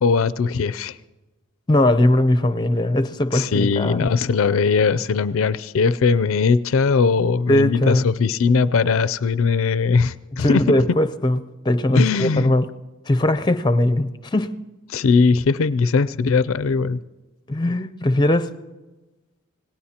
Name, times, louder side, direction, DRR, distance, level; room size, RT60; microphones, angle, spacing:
voice 1, 0.0-1.0 3.3-10.6 11.9-12.5 14.9-17.0, left 5 dB, 70° left, 14 dB, 0.4 m, -20 dB
voice 2, 1.7-4.1 7.5-8.1 10.4-11.4 11.6-12.7 13.1-14.5 17.5-18.5, left 1 dB, 20° left, 11 dB, 0.6 m, -19 dB
26.5 x 18.5 x 2.9 m, 1.2 s
head